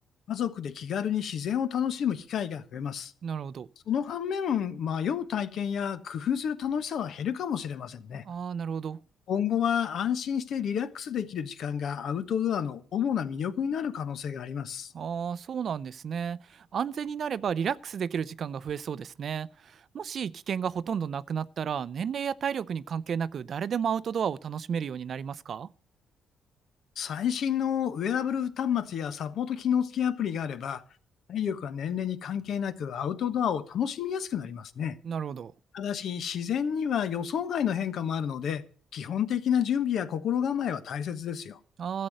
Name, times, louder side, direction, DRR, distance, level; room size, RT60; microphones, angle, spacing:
voice 1, 0.3-3.1 3.9-8.2 9.3-14.9 27.0-30.8 31.3-35.0 35.7-38.6 38.9-41.6, left 8 dB, 70° left, 1.1 m, -30 dB
voice 2, 3.2-3.7 8.2-9.0 14.9-25.7 35.0-35.5 41.8-42.1, right 7 dB, 55° right, 0.5 m, -32 dB
13.0 x 7.7 x 7.8 m
cardioid pair, 90°, 0 cm